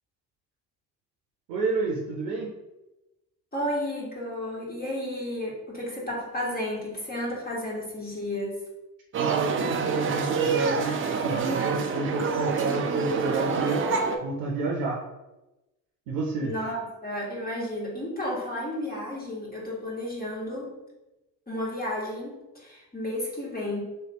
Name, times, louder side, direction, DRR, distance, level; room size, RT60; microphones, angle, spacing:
voice 1, 1.5-2.5 9.2-13.8 14.2-15.0 16.1-16.5, right 3 dB, 75° right, -2 dB, 0.7 m, -30 dB
voice 2, 3.5-8.6 16.4-20.7 21.5-23.8, left 1 dB, 20° left, -4 dB, 1.4 m, -32 dB
sound 1, 9.1-14.2, right 5 dB, 30° right, 0.4 m, -27 dB
3.4 x 2.8 x 2.9 m, 1.0 s
hypercardioid pair, 45°, 48 cm